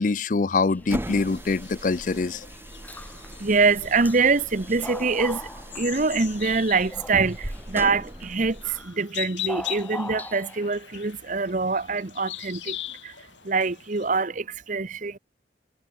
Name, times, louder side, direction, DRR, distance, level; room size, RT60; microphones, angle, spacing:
voice 1, 0.0-2.5, left 3 dB, 45° left, 0.5 m, -24 dB
sound 1, 0.7-1.4 1.8-1.9 2.8-3.3 3.6-4.3 4.6-6.4 6.9-7.7 8.6-9.0 9.5-10.7, left 1 dB, 10° left, 3.7 m, -40 dB
sound 2, 0.8-8.9, right 1 dB, 10° right, 0.6 m, -39 dB
sound 3, 0.9-14.1, left 13 dB, 80° left, 5.1 m, -41 dB
voice 2, 3.4-5.5 5.7-12.8 13.0-13.1 13.4-15.2, right 4 dB, 40° right, 0.9 m, -24 dB
head